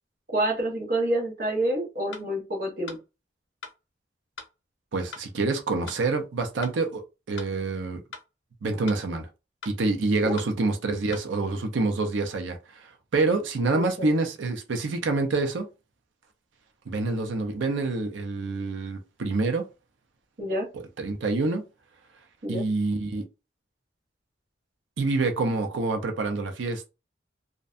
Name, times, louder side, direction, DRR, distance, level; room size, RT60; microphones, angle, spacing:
voice 1, 0.3-3.0 10.2-10.4 13.7-14.1 20.4-20.7 22.4-22.6, right 1 dB, 50° right, 1.0 m, -28 dB
sound 1, 2.1-2.3 2.9-3.0 3.6-3.8 4.4-4.5 5.1-5.3 5.9-6.0 6.6-6.8 7.4-7.5 8.1-8.3 8.9-9.0 9.6-9.8 10.4-10.5 11.1-11.3, left 4 dB, 85° left, 0.6 m, -41 dB
voice 2, 4.9-8.0 8.6-9.3 9.7-15.7 16.9-19.7 20.7-21.6 22.5-23.2 25.0-26.9, right 3 dB, 85° right, 0.5 m, -27 dB
2.5 x 2.1 x 2.4 m
head